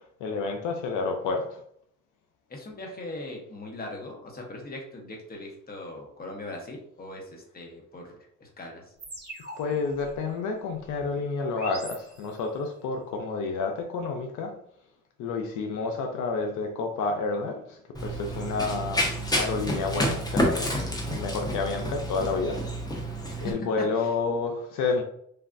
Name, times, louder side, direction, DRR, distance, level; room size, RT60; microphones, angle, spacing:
voice 1, 0.2-1.6 9.6-14.5 15.2-22.6 23.4-25.0, left 4 dB, 85° left, 4 dB, 0.5 m, -30 dB
voice 2, 2.5-8.1 8.4-8.9 23.4-24.1, left 2 dB, 30° left, 0 dB, 0.9 m, -39 dB
sound 1, 9.0-12.7, right 1 dB, 35° right, 1.0 m, -44 dB
Run, 17.9-23.5, equal, 15° left, 0.6 m, -29 dB
3.3 x 2.3 x 2.5 m, 0.68 s
cardioid pair, 90°, 30 cm